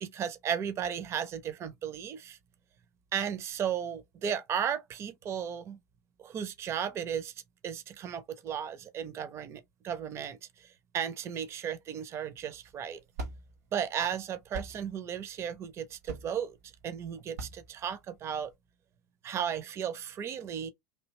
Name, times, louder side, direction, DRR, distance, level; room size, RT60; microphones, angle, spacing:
voice 1, 0.0-2.4 3.1-5.8 6.2-7.3 7.6-10.7 10.9-13.0 13.7-16.6 16.8-18.5 19.2-20.7, right 8 dB, 30° right, 0.6 m, -35 dB
sound 1, 12.4-18.5, right 2 dB, 65° right, 1.0 m, -44 dB
3.2 x 2.8 x 3.1 m
figure-of-eight pair, 80°, 9 cm